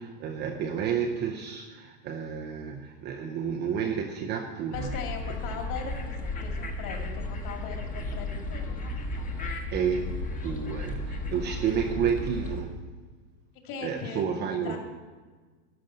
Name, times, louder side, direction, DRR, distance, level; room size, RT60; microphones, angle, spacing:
voice 1, 0.0-4.9 9.4-12.7 13.8-14.8, right 7 dB, 20° right, 2 dB, 0.6 m, -31 dB
voice 2, 4.7-8.8 13.6-14.2 14.6-14.8, left 6 dB, 40° left, 3 dB, 2.3 m, -39 dB
sound 1, 4.7-12.6, left 2 dB, 15° left, 1.1 m, -34 dB
12.5 x 5.2 x 9.0 m, 1.4 s
hypercardioid pair, 135°, 48 cm